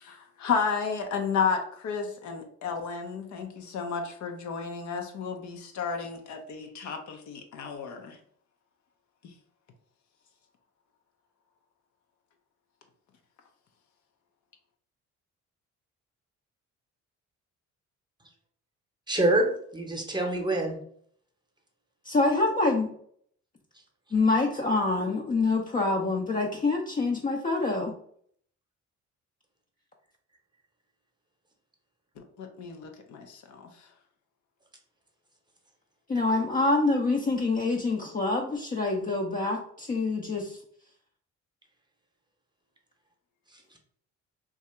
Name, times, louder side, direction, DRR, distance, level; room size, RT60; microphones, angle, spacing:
voice 1, 0.0-8.2 32.4-33.7, left 5 dB, 75° left, 4 dB, 0.7 m, -32 dB
voice 2, 19.1-19.5 19.7-20.8, right 1 dB, 15° right, 2 dB, 0.8 m, -25 dB
voice 3, 22.0-22.9 24.1-27.9 36.1-40.6, left 3 dB, 30° left, -1 dB, 0.5 m, -26 dB
2.8 x 2.4 x 4.2 m, 0.63 s
cardioid pair, 90°, 30 cm